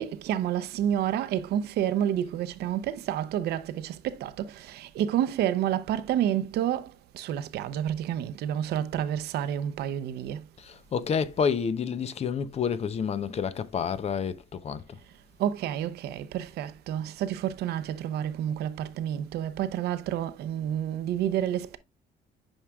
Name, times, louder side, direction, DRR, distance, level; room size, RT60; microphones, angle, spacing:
voice 1, 0.0-10.4 15.4-21.8, right 10 dB, 75° right, 0.7 m, -29 dB
voice 2, 10.6-15.0, left 6 dB, 40° left, 0.6 m, -29 dB
8.9 x 4.8 x 2.3 m
cardioid pair, 110°, 17 cm